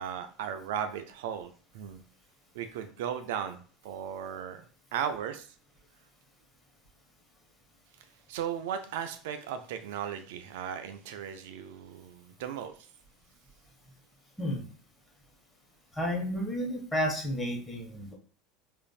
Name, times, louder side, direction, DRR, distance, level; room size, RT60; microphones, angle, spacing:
voice 1, 0.0-2.0 2.5-3.6 3.8-5.5 8.3-12.9, right 8 dB, 65° right, 9 dB, 0.3 m, -36 dB
voice 2, 15.9-18.1, equal, 15° left, -1 dB, 1.2 m, -31 dB
4.9 x 2.5 x 2.3 m, 0.41 s
figure-of-eight pair, 75°, 0 cm